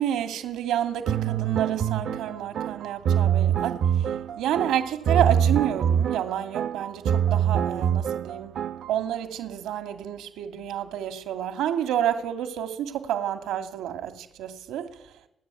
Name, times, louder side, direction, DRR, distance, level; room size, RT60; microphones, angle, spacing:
voice 1, 0.0-8.6 8.9-15.0, right 10 dB, 90° right, 2.5 m, -29 dB
sound 1, 1.1-9.0, right 8 dB, 70° right, 1.0 m, -25 dB
30.0 x 10.5 x 9.2 m
cardioid pair, 90°, 0 cm